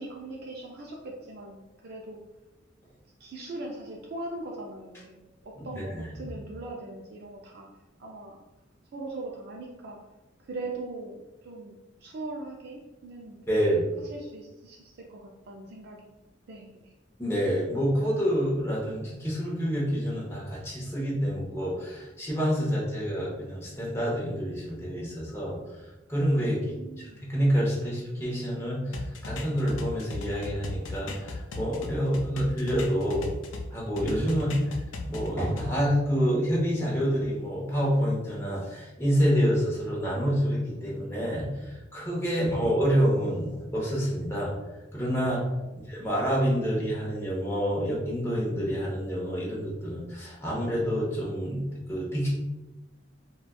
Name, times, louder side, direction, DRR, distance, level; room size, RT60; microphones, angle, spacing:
voice 1, 0.0-2.2 3.2-7.7 8.0-8.4 8.9-10.0 10.4-13.4 14.0-16.2 16.5-16.9 26.4-27.2 45.6-45.8, right 2 dB, 55° right, -1 dB, 0.4 m, -40 dB
voice 2, 13.5-13.8 17.2-25.6 26.1-29.0 29.2-33.3 33.7-34.5 35.1-44.5 44.9-45.4 45.9-52.3, equal, 15° left, -5 dB, 0.7 m, -27 dB
sound 1, 28.9-33.7 34.0-35.7, left 2 dB, 75° left, 0.4 m, -37 dB
4.1 x 2.2 x 2.2 m, 1.1 s
head